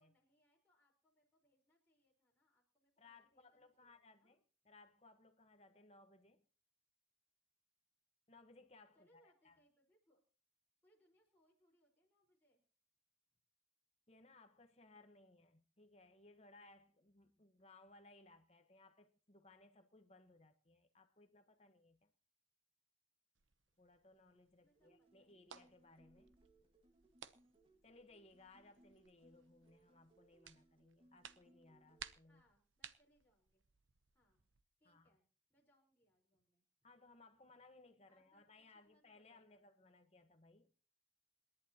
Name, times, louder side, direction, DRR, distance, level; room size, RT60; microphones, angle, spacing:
voice 1, 0.0-4.4 8.9-10.2 10.8-12.6 24.6-25.4 32.3-33.6 34.1-34.4 34.8-36.9 38.1-39.6, equal, 10° left, 4.6 m, -77 dB
voice 2, 3.0-6.5 8.3-9.6 14.1-22.1 23.8-26.3 27.8-32.4 34.8-35.1 36.8-40.7, left 2 dB, 30° left, 1.3 m, -65 dB
sound 1, 23.4-34.6, right 8 dB, 80° right, 0.9 m, -61 dB
sound 2, 24.7-32.1, right 1 dB, 25° right, 1.8 m, -71 dB
27.5 x 11.0 x 3.0 m
head